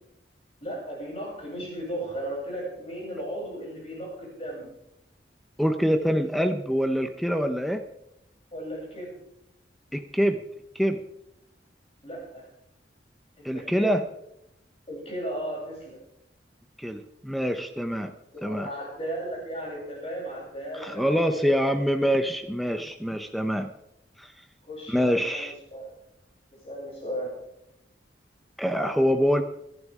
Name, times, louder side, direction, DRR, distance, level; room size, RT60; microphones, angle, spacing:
voice 1, 0.6-4.7 6.0-6.2 8.5-9.1 12.0-12.5 13.4-14.0 14.9-16.0 18.3-21.5 24.6-25.9 26.5-27.4, equal, 35° left, -3 dB, 7.5 m, -36 dB
voice 2, 5.6-7.8 9.9-10.4 10.7-11.0 13.4-14.0 16.8-18.1 18.4-18.7 20.8-23.7 24.2-24.3 24.9-25.5 28.6-29.4, equal, ahead, 6 dB, 0.6 m, -25 dB
25.0 x 11.0 x 3.6 m, 0.82 s
head